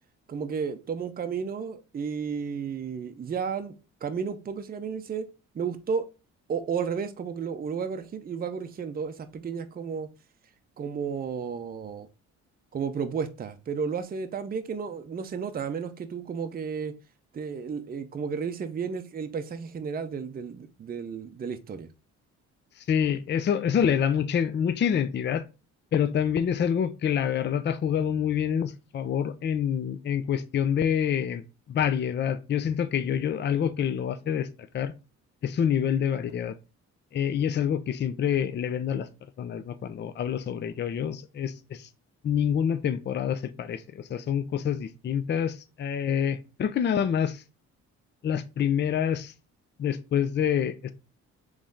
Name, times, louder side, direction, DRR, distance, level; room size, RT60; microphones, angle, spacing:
voice 1, 0.3-3.7 4.0-5.3 5.5-6.1 6.5-10.1 10.8-12.1 12.7-16.9 17.3-21.9, right 6 dB, 30° right, 0.6 m, -32 dB
voice 2, 22.8-25.4 25.9-31.4 31.7-34.5 34.7-34.9 35.4-36.5 37.1-39.1 39.4-41.9 42.2-47.4 48.2-49.3 49.8-50.9, left 8 dB, 35° left, 0.5 m, -27 dB
3.6 x 3.2 x 3.8 m
cardioid pair, 90°, 30 cm